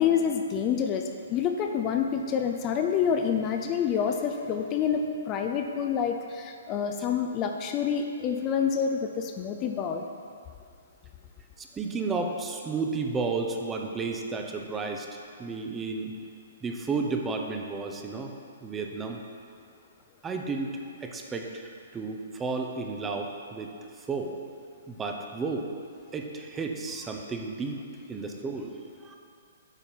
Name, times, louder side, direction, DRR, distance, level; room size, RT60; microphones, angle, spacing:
voice 1, 0.0-10.0, left 7 dB, 30° left, 4 dB, 0.5 m, -27 dB
voice 2, 11.6-16.1 16.6-18.4 18.6-19.2 20.2-23.7 24.0-24.4 24.9-25.7 26.1-28.7 29.0-29.2, right 4 dB, 15° right, 3 dB, 0.7 m, -32 dB
8.9 x 4.4 x 7.2 m, 2.3 s
hypercardioid pair, 140°, 0 cm